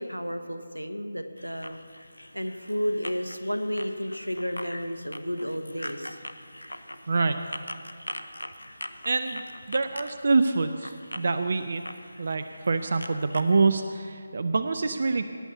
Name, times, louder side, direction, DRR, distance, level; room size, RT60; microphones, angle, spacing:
voice 1, 0.0-1.8 2.3-6.2, equal, 90° right, 8 dB, 1.1 m, -32 dB
sound 1, 1.4-13.8, left 1 dB, 80° left, 0.8 m, -42 dB
voice 2, 7.1-7.4 9.0-9.4 9.7-11.8 12.2-15.2, right 3 dB, 50° right, 9 dB, 0.5 m, -25 dB
17.5 x 7.0 x 6.8 m, 2.2 s
figure-of-eight pair, 155°, 0 cm